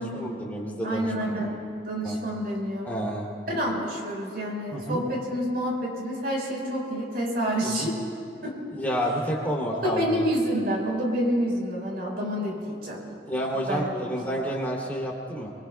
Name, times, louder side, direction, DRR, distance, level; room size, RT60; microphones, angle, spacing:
voice 1, 0.0-1.6 2.0-2.1 2.9-3.3 4.7-5.0 7.6-7.9 8.7-10.2 13.2-15.5, equal, 10° left, -4 dB, 2.9 m, -30 dB
voice 2, 0.8-2.9 3.5-8.0 8.4-8.5 9.7-13.0 13.7-14.0, equal, 60° right, -2 dB, 4.8 m, -28 dB
26.5 x 23.5 x 2.3 m, 2.4 s
head